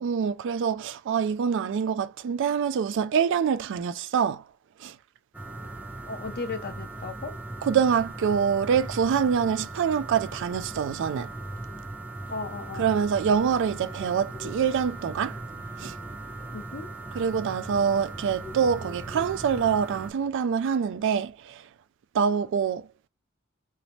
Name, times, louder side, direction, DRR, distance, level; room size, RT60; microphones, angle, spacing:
voice 1, 0.0-4.4 4.8-4.9 7.6-11.3 12.8-15.4 15.8-15.9 17.1-21.6 22.1-22.8, right 7 dB, 60° right, 0.3 m, -25 dB
sound 1, 5.3-20.1, right 2 dB, 5° right, 0.5 m, -39 dB
voice 2, 6.0-7.3 12.3-12.9 16.5-16.9, left 4 dB, 50° left, 0.6 m, -36 dB
2.7 x 2.0 x 3.0 m
head